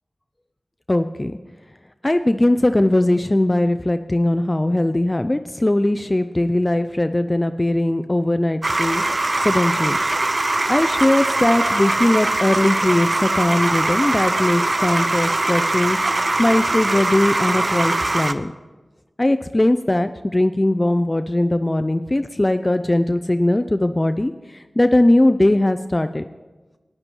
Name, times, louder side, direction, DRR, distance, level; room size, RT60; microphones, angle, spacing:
voice 1, 0.9-1.3 2.0-9.0 9.4-10.1 10.7-16.0 16.4-18.5 19.2-24.3 24.8-26.2, left 1 dB, 30° left, 9 dB, 0.4 m, -19 dB
sound 1, 8.6-18.3, right 2 dB, 50° right, 0.6 m, -21 dB
13.0 x 9.5 x 4.5 m, 1.2 s
wide cardioid pair, 55°, 0 cm